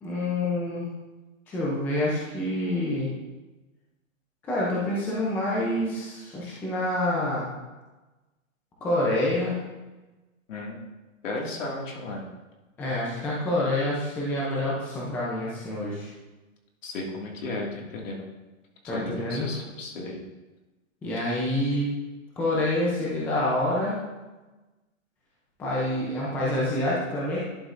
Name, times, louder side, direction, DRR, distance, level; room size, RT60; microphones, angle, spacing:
voice 1, 0.0-0.9 1.5-3.1 4.5-7.5 8.8-9.6 12.8-16.1 18.9-19.5 21.0-21.9 22.4-24.0 25.6-27.4, left 1 dB, 5° left, -6 dB, 0.5 m, -27 dB
voice 2, 11.2-12.3 16.8-18.3 18.8-20.2, left 2 dB, 70° left, -1 dB, 2.2 m, -34 dB
11.0 x 6.2 x 2.5 m, 1.1 s
hypercardioid pair, 155°, 40 cm